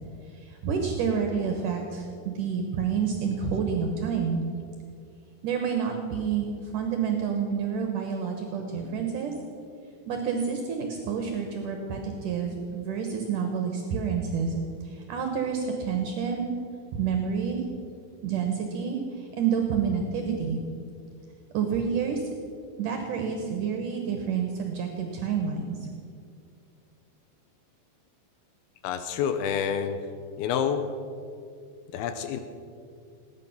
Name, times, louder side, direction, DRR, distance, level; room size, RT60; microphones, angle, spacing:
voice 1, 0.3-4.4 5.4-9.3 10.1-16.5 16.9-17.6 18.2-20.6 21.5-22.3 22.8-25.9, right 6 dB, 65° right, 3 dB, 2.4 m, -29 dB
voice 2, 28.8-30.0 30.4-30.8 31.9-32.4, left 8 dB, 85° left, 8 dB, 2.7 m, -28 dB
19.0 x 9.6 x 5.9 m, 2.4 s
omnidirectional pair, 4.4 m